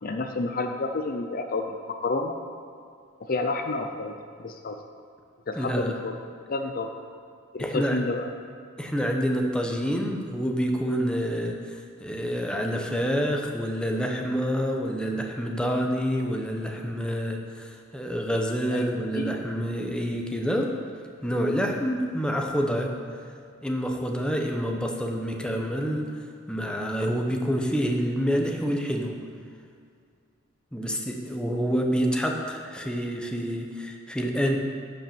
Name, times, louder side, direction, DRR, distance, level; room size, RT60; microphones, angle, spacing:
voice 1, 0.0-2.4 3.3-4.1 4.4-4.8 5.5-6.2 6.5-6.9 7.5-8.3 18.7-19.4 30.8-31.0, left 3 dB, 45° left, 5 dB, 0.6 m, -30 dB
voice 2, 5.5-6.0 7.6-8.0 8.8-20.7 21.2-22.9 23.6-26.1 26.5-29.1 30.7-34.6, equal, 5° left, 1 dB, 0.9 m, -27 dB
11.5 x 5.4 x 7.0 m, 2.3 s
head